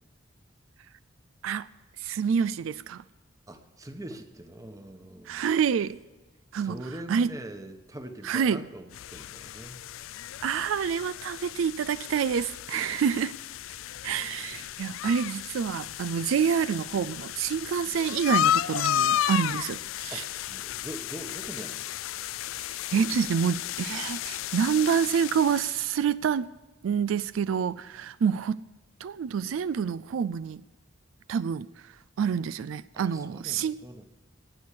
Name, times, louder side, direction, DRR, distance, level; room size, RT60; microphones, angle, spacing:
voice 1, 2.0-3.0 5.3-6.0 6.5-6.8 7.1-7.3 8.2-8.6 10.4-13.4 14.0-20.2 22.9-26.5 26.8-28.6 29.0-30.6 31.3-31.7 32.2-33.7, right 7 dB, 80° right, 0.3 m, -27 dB
voice 2, 3.5-5.5 6.6-9.9 20.1-21.9 32.9-34.0, right 1 dB, 15° right, 1.1 m, -43 dB
sound 1, 8.9-25.9, left 11 dB, 85° left, 0.3 m, -33 dB
18.0 x 6.2 x 8.4 m
head